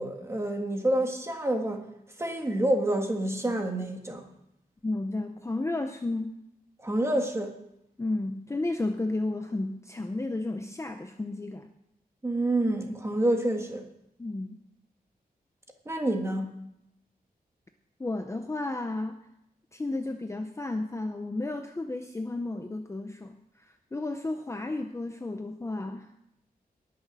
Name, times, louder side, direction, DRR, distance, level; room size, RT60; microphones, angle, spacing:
voice 1, 0.0-1.8 2.2-4.2 6.8-7.5 12.2-13.8 15.9-16.5, right 1 dB, 15° right, 3 dB, 1.7 m, -28 dB
voice 2, 4.8-6.3 8.0-11.7 14.2-14.6 18.0-19.2 19.7-26.1, left 2 dB, 20° left, 6 dB, 0.6 m, -32 dB
19.5 x 6.7 x 6.1 m, 0.82 s
wide cardioid pair, 165°, 16 cm